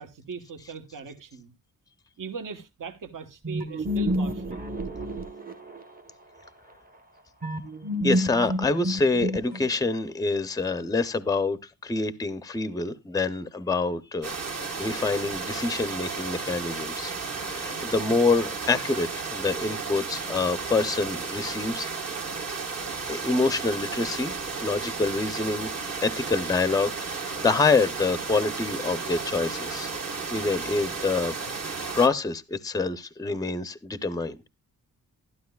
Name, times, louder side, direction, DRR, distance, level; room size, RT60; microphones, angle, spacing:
voice 1, 0.0-1.5 2.2-4.6, right 5 dB, 65° right, 1.1 m, -39 dB
sound 1, 3.4-6.0 7.4-9.9, equal, 25° right, 0.9 m, -29 dB
voice 2, 8.0-14.3 14.6-22.1 23.1-24.3 24.6-25.7 26.0-29.9 30.3-31.3 31.9-34.3, left 3 dB, 10° left, 0.5 m, -26 dB
sound 2, 14.2-32.1, right 4 dB, 45° right, 1.5 m, -33 dB
12.0 x 12.0 x 2.3 m
wide cardioid pair, 150°, 35 cm